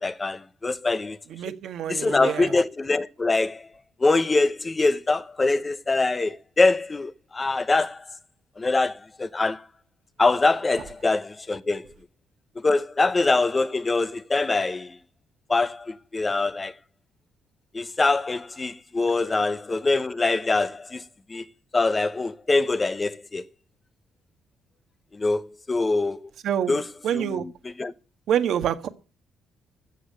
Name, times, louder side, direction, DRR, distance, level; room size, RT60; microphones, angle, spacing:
voice 1, 0.0-1.2 1.9-3.6 4.0-8.0 8.6-9.6 10.2-11.8 12.6-15.0 15.5-16.7 17.7-21.0 21.3-21.4 21.7-23.4 25.1-26.3 26.7-26.8 27.1-27.5 27.8-27.9, left 3 dB, 25° left, 1.0 m, -24 dB
voice 2, 1.3-2.5 26.4-26.8 27.0-27.5 28.3-28.9, right 9 dB, 75° right, 1.6 m, -26 dB
13.0 x 7.4 x 8.4 m
cardioid pair, 90°, 0 cm